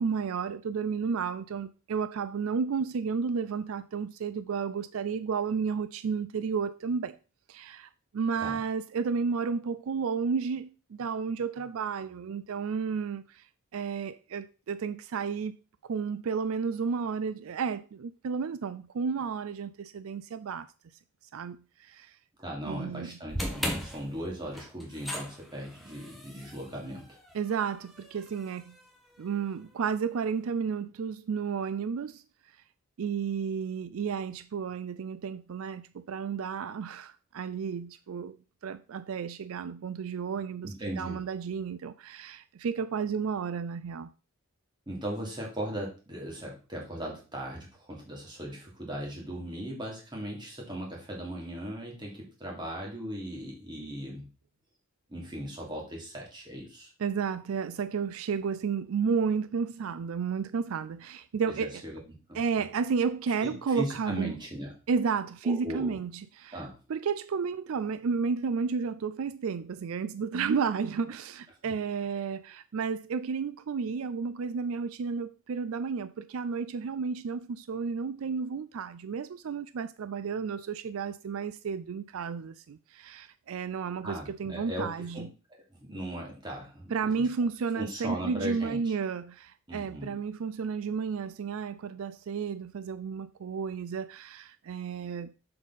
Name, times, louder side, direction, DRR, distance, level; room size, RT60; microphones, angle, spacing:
voice 1, 0.0-7.2 7.5-13.5 13.7-15.6 15.8-20.7 21.3-22.2 22.6-23.1 27.3-28.8 29.2-32.2 33.0-38.4 38.6-44.1 57.0-61.8 62.3-64.3 64.9-66.6 66.9-85.3 86.9-95.3, right 5 dB, 70° right, 0.4 m, -32 dB
voice 2, 22.4-27.2 40.6-41.2 44.9-54.3 55.1-56.9 61.5-62.7 63.4-64.7 65.4-66.0 66.5-66.8 71.6-71.7 84.0-84.9 85.1-85.3 85.7-87.3 87.8-88.9 89.7-90.1, equal, 20° right, 2.7 m, -38 dB
sound 1, 23.3-29.6, equal, ahead, 1.3 m, -39 dB
7.3 x 6.8 x 4.1 m
head